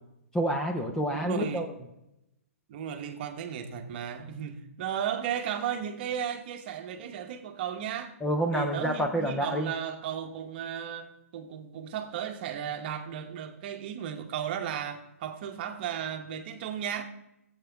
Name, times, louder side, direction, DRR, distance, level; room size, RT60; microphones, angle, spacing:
voice 1, 0.3-1.7 8.2-9.7, equal, 5° left, 0.6 m, -28 dB
voice 2, 1.2-1.7 2.7-8.1 8.5-17.0, right 9 dB, 40° right, 1.1 m, -35 dB
16.5 x 8.2 x 3.5 m
hypercardioid pair, 155°, 8 cm